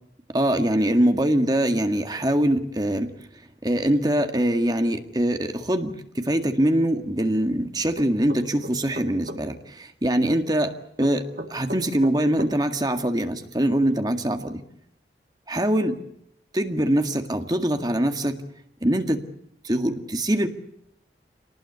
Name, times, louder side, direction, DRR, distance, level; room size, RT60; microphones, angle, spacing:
voice 1, 0.3-3.1 3.6-14.6 15.5-16.0 16.5-18.4 18.8-19.3 19.6-20.5, right 1 dB, 20° right, 7 dB, 1.9 m, -23 dB
sound 1, 8.0-9.4 11.0-12.5, equal, 50° right, 2.6 m, -35 dB
26.0 x 19.5 x 8.2 m, 0.76 s
head